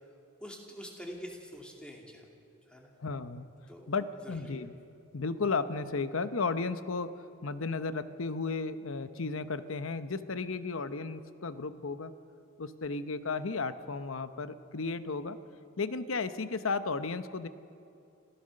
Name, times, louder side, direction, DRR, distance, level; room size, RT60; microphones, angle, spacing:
voice 1, 0.4-2.3 2.7-2.9 3.7-4.6, equal, 5° left, 0 dB, 2.5 m, -46 dB
voice 2, 3.0-3.5 3.9-4.8 5.1-7.1 7.4-12.1 12.6-15.4 15.8-17.5, left 4 dB, 75° left, 12 dB, 0.9 m, -34 dB
26.5 x 15.5 x 6.5 m, 2.6 s
head